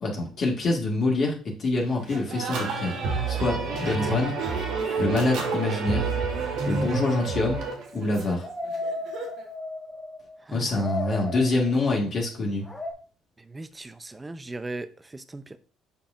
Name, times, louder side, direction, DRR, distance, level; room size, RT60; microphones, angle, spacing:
voice 1, 0.0-3.0 3.3-4.4 5.0-6.0 6.7-7.7 7.9-8.4 10.5-12.6, left 2 dB, 45° left, 1.8 m, -26 dB
Laughter, 2.0-9.5, right 4 dB, 65° right, 1.4 m, -39 dB
sound 1, 2.5-7.7, right 4 dB, 85° right, 2.0 m, -28 dB
sound 2, 6.8-10.4 10.7-12.0 12.7-12.9, left 2 dB, 10° left, 1.2 m, -35 dB
voice 2, 13.5-14.9 15.1-15.6, right 2 dB, 15° right, 0.5 m, -38 dB
7.0 x 5.4 x 2.5 m
cardioid pair, 115°, 0 cm